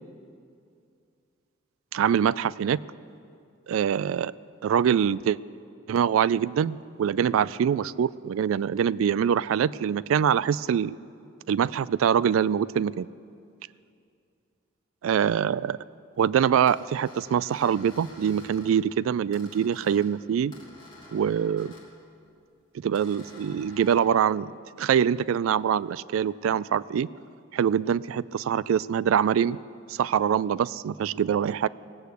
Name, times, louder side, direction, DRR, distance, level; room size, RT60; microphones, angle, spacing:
voice 1, 1.9-2.8 3.7-4.3 4.6-5.4 5.9-11.0 11.5-13.1 15.0-15.8 16.2-20.5 21.1-21.7 22.8-24.5 24.8-27.1 27.5-29.6 29.9-31.7, right 8 dB, 80° right, 19 dB, 0.3 m, -24 dB
sound 1, 16.7-18.8 19.3-20.1 20.5-21.9 23.0-24.1, left 2 dB, 25° left, 2.9 m, -50 dB
18.5 x 8.1 x 8.4 m, 2.4 s
head